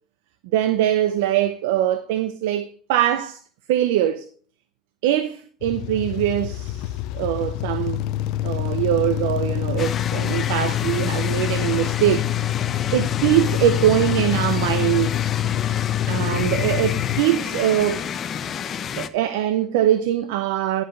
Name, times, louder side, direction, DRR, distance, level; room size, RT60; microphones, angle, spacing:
voice 1, 0.5-3.4 3.7-4.3 5.0-8.0 8.4-12.2 12.6-15.2 16.1-18.0 19.0-20.8, right 12 dB, 85° right, 0.6 m, -22 dB
sound 1, 5.6-17.2, left 12 dB, 70° left, 0.5 m, -26 dB
sound 2, 9.8-19.1, left 8 dB, 45° left, 0.8 m, -30 dB
11.0 x 5.4 x 5.5 m
supercardioid pair, 100°, 0 cm